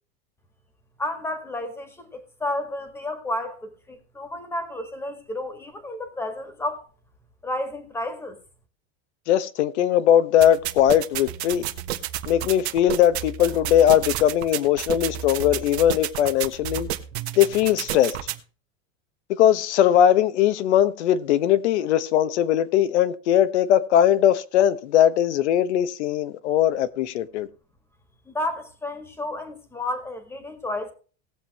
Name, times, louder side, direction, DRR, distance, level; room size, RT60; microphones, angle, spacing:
voice 1, 1.0-6.8 7.4-8.4 28.2-30.9, left 1 dB, 5° left, 1.7 m, -31 dB
voice 2, 9.3-11.6 12.3-16.9 17.4-18.2 19.4-27.5, left 11 dB, 85° left, 1.2 m, -20 dB
sound 1, 10.4-18.4, right 12 dB, 70° right, 1.3 m, -31 dB
19.0 x 7.4 x 3.0 m
supercardioid pair, 170°, 34 cm